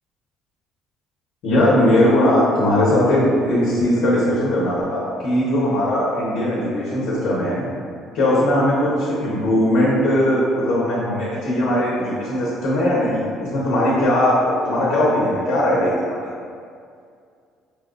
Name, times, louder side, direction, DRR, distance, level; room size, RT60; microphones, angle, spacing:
voice 1, 1.4-7.6 8.1-16.2, left 1 dB, 80° left, -7 dB, 0.8 m, -19 dB
4.4 x 2.3 x 2.4 m, 2.2 s
cardioid pair, 100°, 0 cm